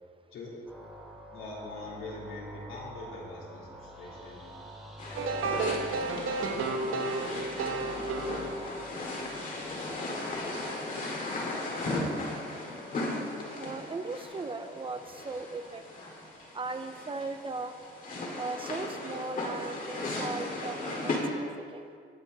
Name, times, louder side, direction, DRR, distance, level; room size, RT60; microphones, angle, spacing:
sound 1, 0.7-19.9, right 1 dB, ahead, 2.7 m, -49 dB
voice 1, 1.3-4.5 5.1-5.8, left 2 dB, 75° left, -4 dB, 3.5 m, -43 dB
sound 2, 5.0-21.2, left 2 dB, 40° left, 2.3 m, -37 dB
sound 3, 5.2-9.0, right 3 dB, 80° right, 1.1 m, -32 dB
voice 2, 13.6-15.8 16.5-17.7 18.4-21.8, right 3 dB, 25° right, 8 dB, 0.6 m, -38 dB
19.5 x 7.5 x 4.0 m, 2.2 s
cardioid pair, 130°, 21 cm